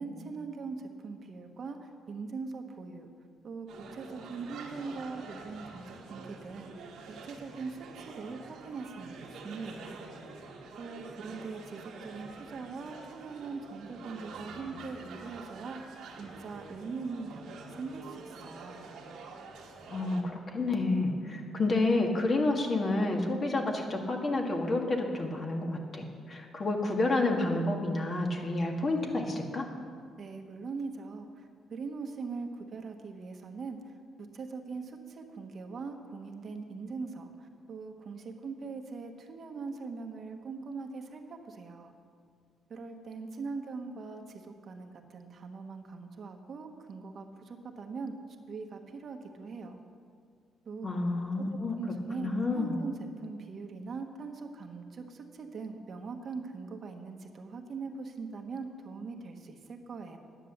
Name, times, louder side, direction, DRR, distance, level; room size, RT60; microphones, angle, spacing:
voice 1, 0.0-3.1 3.4-10.0 10.8-18.8 30.2-41.9 42.7-48.2 48.5-49.8 50.6-51.3 51.7-60.2, right 4 dB, 50° right, 5 dB, 1.2 m, -41 dB
sound 1, 3.7-20.2, right 3 dB, 80° right, 1.7 m, -47 dB
voice 2, 19.9-29.7 50.8-51.8 52.2-52.8, left 2 dB, 40° left, 2 dB, 1.8 m, -29 dB
9.8 x 9.7 x 7.2 m, 2.2 s
cardioid pair, 90°, 0 cm